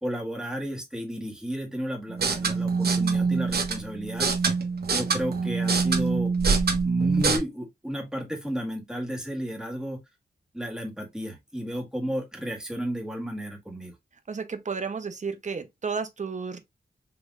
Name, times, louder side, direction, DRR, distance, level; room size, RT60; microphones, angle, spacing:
voice 1, 0.0-4.5 4.9-6.3 6.8-10.0 10.5-13.9, equal, 5° right, 1.8 m, -33 dB
sound 1, 2.1-7.4, right 4 dB, 65° right, 1.2 m, -25 dB
voice 2, 14.3-16.6, right 5 dB, 45° right, 1.0 m, -32 dB
6.0 x 3.4 x 2.6 m
wide cardioid pair, 90°, 17 cm